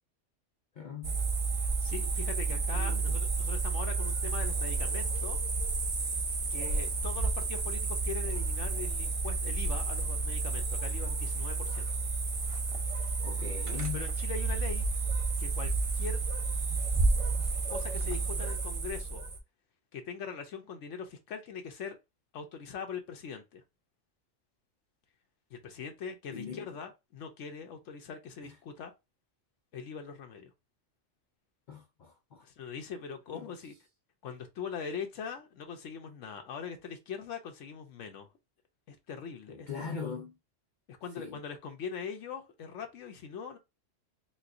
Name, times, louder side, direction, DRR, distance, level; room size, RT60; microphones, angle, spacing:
voice 1, 0.8-1.2 2.5-3.2 13.2-14.1 26.3-26.7 28.4-28.6 31.7-32.5 33.3-33.5 39.5-40.4 41.2-41.4, left 6 dB, 60° left, 0.5 m, -41 dB
sound 1, 1.0-19.4, right 3 dB, 45° right, 0.5 m, -31 dB
voice 2, 1.8-5.4 6.5-11.9 13.9-14.9 15.4-16.2 17.7-19.2 19.9-22.0 22.3-23.6 25.5-28.9 29.7-30.5 32.4-33.7 34.2-38.3 38.9-40.0 40.9-43.6, left 6 dB, 85° left, 1.0 m, -42 dB
4.1 x 2.3 x 2.5 m
omnidirectional pair, 1.2 m